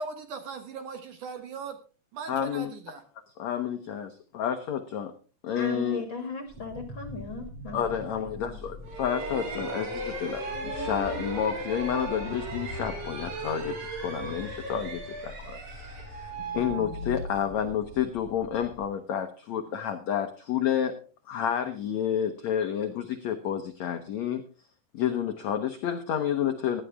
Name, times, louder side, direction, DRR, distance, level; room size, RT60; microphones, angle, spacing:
voice 1, 0.0-1.8 2.1-3.0, right 4 dB, 60° right, 7 dB, 2.4 m, -38 dB
voice 2, 2.3-2.7 3.4-5.1 5.4-6.0 7.7-21.0 21.3-24.4 24.9-26.8, left 9 dB, 85° left, 7 dB, 1.5 m, -30 dB
voice 3, 5.5-7.8 8.1-8.5, left 2 dB, 45° left, 6 dB, 1.7 m, -37 dB
sound 1, 6.5-18.9, left 2 dB, 30° right, 3.1 m, -43 dB
sound 2, 8.8-17.5, right 2 dB, 90° right, 5.6 m, -37 dB
16.0 x 11.5 x 3.5 m, 0.35 s
omnidirectional pair, 4.6 m